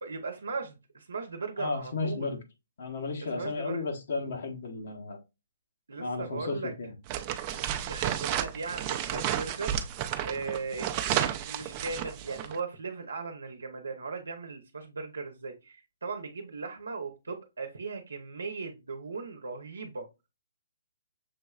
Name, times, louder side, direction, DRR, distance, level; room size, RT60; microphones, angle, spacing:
voice 1, 0.0-2.4 3.2-3.9 5.9-6.7 7.8-9.8 10.2-10.9 11.2-20.1, right 4 dB, 80° right, 0.8 m, -38 dB
voice 2, 1.6-2.4 2.8-5.2 6.0-6.9, left 3 dB, 65° left, 1.2 m, -33 dB
sound 1, 7.1-12.6, right 11 dB, 30° right, 0.5 m, -32 dB
6.3 x 3.1 x 2.3 m
hypercardioid pair, 135°, 0 cm